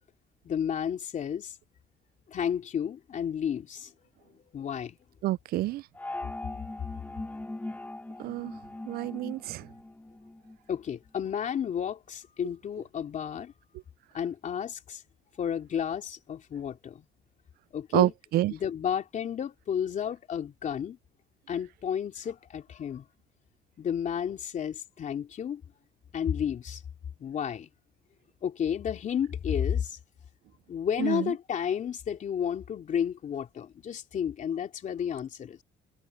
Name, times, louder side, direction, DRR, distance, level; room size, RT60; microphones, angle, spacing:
voice 1, 0.4-1.5 2.3-3.9 4.5-5.0 10.7-13.5 14.1-15.0 15.4-17.0 17.7-18.1 18.5-21.0 21.5-23.0 23.8-25.6 26.1-26.8 27.2-27.7 28.4-30.0 30.7-35.6, left 8 dB, 45° left, 3.2 m, -32 dB
voice 2, 5.2-5.8 8.2-8.5 8.9-9.6 17.9-18.5 31.0-31.2, right 16 dB, 65° right, 0.4 m, -27 dB
sound 1, 5.9-10.6, left 2 dB, 10° left, 1.4 m, -40 dB
cardioid pair, 110°, 17 cm